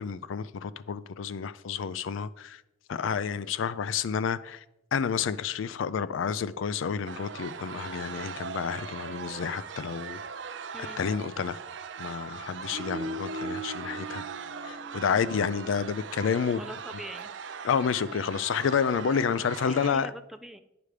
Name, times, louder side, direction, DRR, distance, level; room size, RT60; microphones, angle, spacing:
voice 1, 0.0-2.6 2.9-4.6 4.9-10.2 11.0-11.6 12.0-14.3 14.6-16.6 17.6-20.1, left 6 dB, 80° left, 0.4 m, -29 dB
sound 1, 7.0-19.9, right 5 dB, 65° right, 0.5 m, -39 dB
voice 2, 16.6-17.3 18.1-18.2 19.6-20.6, equal, ahead, 0.3 m, -43 dB
9.1 x 5.0 x 4.9 m
head